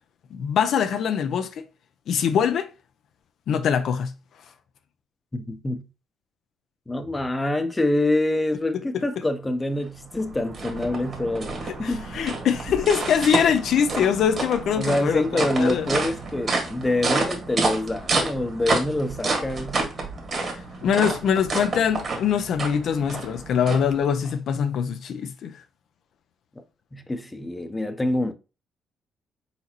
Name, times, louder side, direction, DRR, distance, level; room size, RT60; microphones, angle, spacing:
voice 1, 0.3-1.6 2.1-2.7 3.5-4.1 11.8-15.9 20.8-25.6, left 7 dB, 70° left, 0.4 m, -23 dB
voice 2, 5.3-5.9 6.9-12.1 14.7-19.8 26.9-28.3, left 1 dB, 15° left, 0.6 m, -26 dB
sound 1, 9.9-24.3, right 3 dB, 45° right, 1.5 m, -29 dB
4.1 x 4.0 x 2.9 m
cardioid pair, 90°, 0 cm